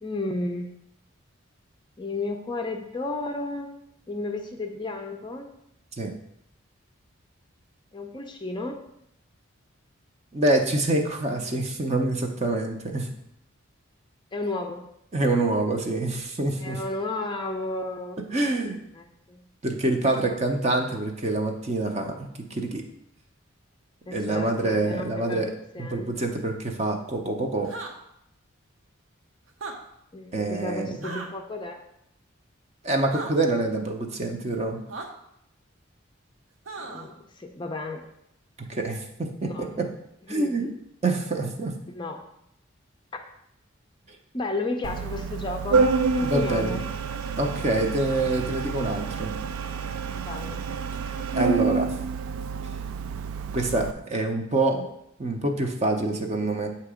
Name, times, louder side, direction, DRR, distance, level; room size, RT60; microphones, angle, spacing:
voice 1, 0.0-0.7 2.0-3.7 4.1-5.5 7.9-8.8 14.3-14.9 16.6-18.2 18.9-19.5 20.7-20.9 24.1-26.1 30.1-31.8 36.9-38.0 39.4-39.8 40.3-40.6 41.9-42.3 43.1-43.2 44.3-46.9 50.1-50.7, left 2 dB, 20° left, 4 dB, 0.4 m, -33 dB
voice 2, 10.3-13.1 15.1-16.8 18.3-18.8 19.6-22.8 24.1-25.5 25.8-27.7 30.3-31.2 32.8-34.8 38.6-39.9 40.3-40.7 41.0-41.7 46.2-46.8 47.4-49.3 51.3-51.9 53.5-54.8 55.2-56.7, right 2 dB, 30° right, 3 dB, 0.6 m, -26 dB
sound 1, 27.6-27.9 29.5-29.8 31.0-31.3 33.1-33.3 34.9-35.1 36.7-37.1, right 3 dB, 70° right, 0.9 m, -36 dB
Organ, 44.8-53.9, right 5 dB, 85° right, 0.3 m, -28 dB
8.0 x 2.9 x 4.8 m, 0.78 s
head